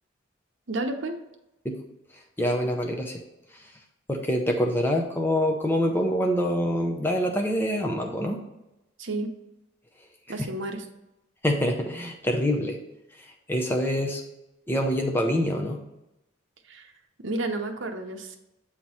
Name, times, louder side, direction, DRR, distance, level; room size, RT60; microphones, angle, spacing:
voice 1, 0.7-1.2 9.0-9.3 10.3-10.8 16.7-16.9 17.2-18.4, right 2 dB, 65° right, 4 dB, 0.8 m, -31 dB
voice 2, 2.4-3.2 3.5-3.7 4.1-8.4 10.4-10.5 11.4-12.8 13.2-14.2 14.7-15.8, equal, 10° left, 2 dB, 0.6 m, -26 dB
8.6 x 3.0 x 5.4 m, 0.94 s
head